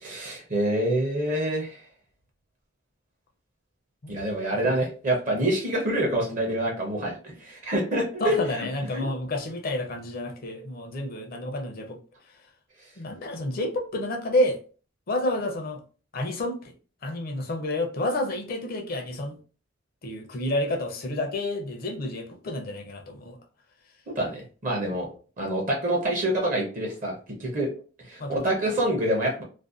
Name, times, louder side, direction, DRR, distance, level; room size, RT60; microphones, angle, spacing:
voice 1, 0.0-1.8 4.1-8.4 8.9-9.0 24.2-25.1 25.4-27.1 27.4-27.7 28.1-29.4, right 1 dB, 40° right, 0 dB, 0.6 m, -26 dB
voice 2, 7.1-7.4 8.2-12.0 12.3-12.4 13.0-14.6 15.1-15.8 16.1-16.7 17.0-19.4 20.0-23.4 28.2-28.6, left 1 dB, 50° left, 3 dB, 0.5 m, -30 dB
2.5 x 2.1 x 2.4 m, 0.38 s
head